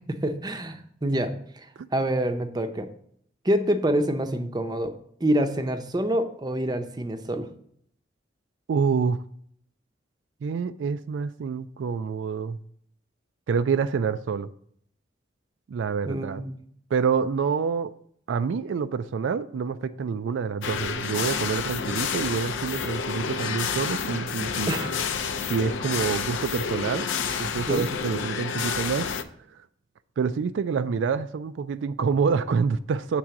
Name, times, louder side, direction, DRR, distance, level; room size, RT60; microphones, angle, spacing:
voice 1, 0.1-1.3 1.9-2.9 3.4-4.9 5.2-7.5 16.1-16.6 24.7-24.9 26.1-26.2 27.7-27.9, right 1 dB, 20° right, 8 dB, 0.6 m, -26 dB
voice 2, 8.7-9.2 10.4-12.6 13.5-14.5 15.7-16.4 16.9-17.9 18.3-24.7 25.5-27.1 27.4-29.1 30.2-33.2, right 5 dB, 85° right, 12 dB, 0.3 m, -27 dB
sound 1, 20.6-29.2, left 6 dB, 90° left, 0.5 m, -29 dB
7.6 x 3.7 x 5.8 m, 0.65 s
head